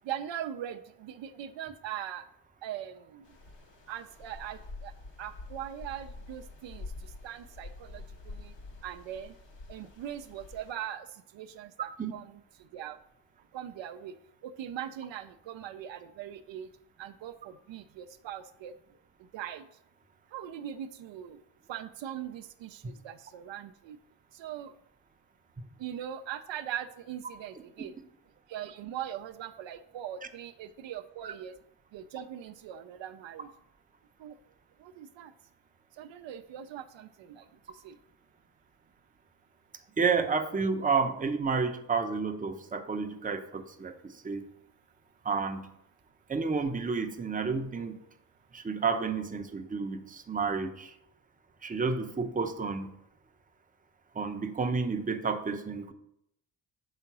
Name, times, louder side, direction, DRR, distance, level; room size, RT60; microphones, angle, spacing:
voice 1, 0.0-2.3 2.6-3.3 3.9-4.9 5.2-8.5 8.8-9.3 9.7-13.0 13.5-14.2 14.4-16.7 17.0-18.7 19.2-19.7 20.3-21.4 21.7-24.0 24.3-24.7 25.8-28.0 28.5-31.6 31.9-33.5 34.2-34.4 34.8-35.3 35.9-38.0, right 10 dB, 70° right, 9 dB, 0.5 m, -41 dB
sound 1, 3.2-10.7, left 3 dB, 65° left, 1.3 m, -47 dB
voice 2, 40.0-44.4 45.2-45.7 46.3-48.0 48.5-50.9 51.6-52.9 54.1-55.9, right 5 dB, 15° right, 6 dB, 0.7 m, -30 dB
5.7 x 3.7 x 6.0 m, 0.76 s
cardioid pair, 70°, 47 cm